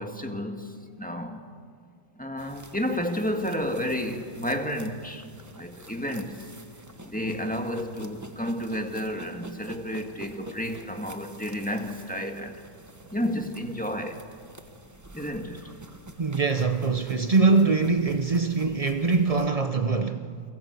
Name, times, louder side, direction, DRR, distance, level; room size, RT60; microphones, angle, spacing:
voice 1, 0.0-1.4 2.2-5.3 5.6-6.5 7.0-12.6 13.1-14.3 15.1-15.7, equal, 5° left, 1.8 m, -31 dB
sound 1, 2.4-19.5, right 1 dB, 15° right, 0.8 m, -48 dB
voice 2, 16.2-20.4, right 4 dB, 50° right, 0.4 m, -23 dB
29.5 x 23.5 x 8.2 m
omnidirectional pair, 2.0 m